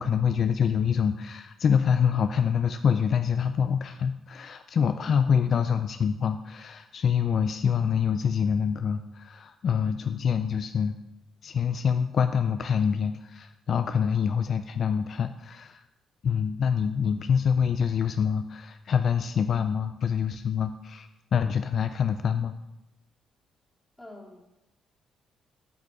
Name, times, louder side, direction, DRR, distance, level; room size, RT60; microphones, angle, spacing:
voice 1, 0.0-10.9 11.4-15.8 16.2-22.5, left 7 dB, 55° left, 9 dB, 0.3 m, -26 dB
voice 2, 4.7-5.4 24.0-24.4, left 2 dB, 10° left, -2 dB, 2.3 m, -46 dB
9.0 x 4.9 x 4.8 m, 0.92 s
cardioid pair, 90°, 0 cm